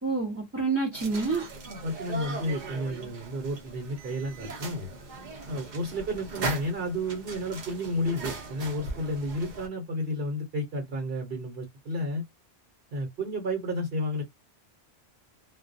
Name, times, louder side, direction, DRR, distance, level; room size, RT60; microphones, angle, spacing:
voice 1, 0.0-1.5, right 4 dB, 15° right, 0.6 m, -28 dB
sound 1, 0.9-9.7, right 3 dB, 50° right, 0.8 m, -39 dB
voice 2, 1.6-4.9 5.5-12.2 12.9-14.2, equal, 65° right, 1.1 m, -32 dB
2.2 x 2.2 x 2.5 m
omnidirectional pair, 1.1 m